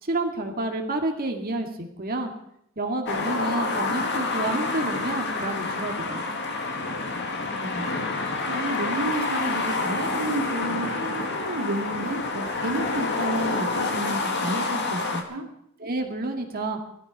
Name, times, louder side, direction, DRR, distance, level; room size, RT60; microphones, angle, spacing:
voice 1, 0.0-2.3 2.8-6.4 15.8-16.8, right 2 dB, 45° right, 3 dB, 2.1 m, -29 dB
sound 1, 3.1-15.2, left 3 dB, 55° left, 2.2 m, -28 dB
voice 2, 8.5-15.4, right 2 dB, 80° right, 3 dB, 3.2 m, -31 dB
17.5 x 13.5 x 5.5 m, 0.75 s
head